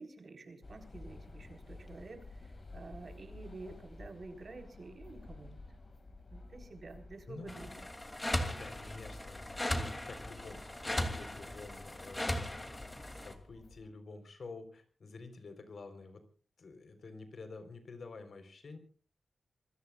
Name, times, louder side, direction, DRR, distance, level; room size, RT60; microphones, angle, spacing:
voice 1, 0.0-5.6 6.3-7.7, right 3 dB, 50° right, 4 dB, 4.4 m, -50 dB
sound 1, 0.6-13.9, left 2 dB, 40° left, 2.2 m, -53 dB
voice 2, 7.3-7.9 8.5-16.2 16.6-18.8, left 3 dB, 65° left, 8 dB, 3.9 m, -49 dB
sound 2, 7.5-13.3, left 1 dB, 15° left, 2.7 m, -38 dB
27.0 x 21.5 x 2.4 m, 0.39 s
wide cardioid pair, 105°, 0 cm